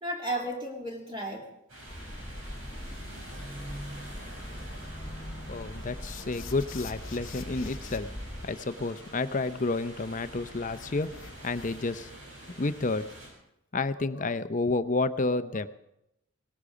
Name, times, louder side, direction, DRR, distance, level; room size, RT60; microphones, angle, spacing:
voice 1, 0.0-1.5 14.0-14.3 15.3-15.4, right 1 dB, 25° right, -1 dB, 2.6 m, -35 dB
sound 1, 1.7-13.3, right 1 dB, 70° right, 6.7 m, -45 dB
sound 2, 1.9-8.5, left 1 dB, 15° left, 1.4 m, -42 dB
voice 2, 5.5-8.1 8.4-12.1 12.6-13.1 13.7-15.7, left 3 dB, 35° left, 12 dB, 0.6 m, -30 dB
sound 3, 6.0-8.0 10.7-12.0, left 7 dB, 65° left, 1.0 m, -48 dB
18.5 x 13.5 x 5.0 m, 0.82 s
head